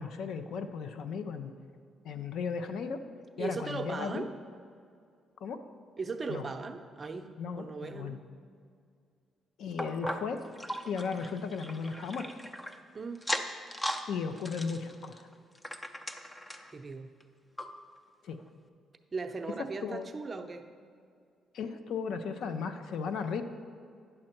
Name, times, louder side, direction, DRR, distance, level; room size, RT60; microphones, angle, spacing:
voice 1, 0.0-1.5 2.0-3.0 3.4-4.2 5.4-5.6 6.3-6.5 7.4-8.2 9.6-10.4 10.8-12.3 14.1-15.3 18.2-18.4 19.8-20.1 21.5-23.4, left 5 dB, 75° left, 8 dB, 0.6 m, -35 dB
voice 2, 3.4-4.3 6.0-7.3 7.6-8.2 12.9-13.2 16.7-17.1 19.1-20.6, right 4 dB, 35° right, 6 dB, 0.6 m, -38 dB
sound 1, 9.8-12.8 13.2-14.1 14.4-16.7 17.2-17.3 17.6-17.7 18.3-18.4, equal, 15° left, 0.6 m, -38 dB
9.7 x 6.4 x 4.4 m, 2.3 s
cardioid pair, 90°, 0 cm